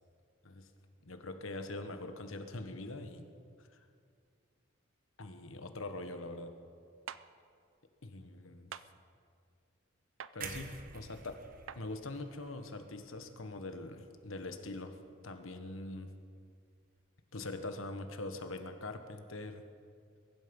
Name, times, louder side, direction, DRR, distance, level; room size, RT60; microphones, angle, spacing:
voice 1, 1.0-3.3 3.6-3.8 5.2-6.5 8.0-8.7 10.3-11.4 11.7-14.9 15.2-16.1 17.3-19.6, left 2 dB, 75° left, 7 dB, 1.3 m, -43 dB
sound 1, 7.1-7.2 8.7-8.9 10.2-10.4 11.7-11.8, right 8 dB, 70° right, 0.5 m, -44 dB
sound 2, 10.4-14.4 14.8-15.0, right 5 dB, 40° right, 1.1 m, -49 dB
22.0 x 11.5 x 5.4 m, 2.3 s
head